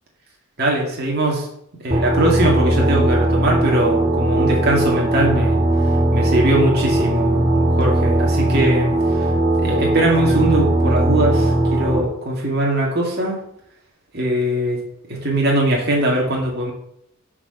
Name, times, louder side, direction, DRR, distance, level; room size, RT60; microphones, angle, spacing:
voice 1, 0.6-1.5 1.8-5.6 6.1-8.9 9.6-13.4 14.1-14.8 15.1-16.7, right 1 dB, 50° right, -2 dB, 2.2 m, -21 dB
sound 1, 1.9-12.0, right 1 dB, 30° right, 1.5 m, -18 dB
7.1 x 4.9 x 6.5 m, 0.74 s
head